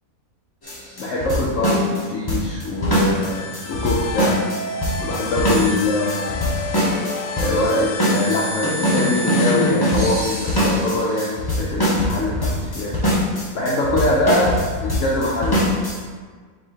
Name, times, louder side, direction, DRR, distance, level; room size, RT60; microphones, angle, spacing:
sound 1, 0.6-16.0, equal, 20° left, 0.6 m, -22 dB
voice 1, 1.0-4.4 5.0-6.6 7.4-13.0 13.5-15.6, left 1 dB, 65° left, -4 dB, 0.8 m, -23 dB
sound 2, 2.7-10.4, left 3 dB, 90° left, 1.2 m, -30 dB
5.4 x 3.2 x 2.8 m, 1.5 s
omnidirectional pair, 1.7 m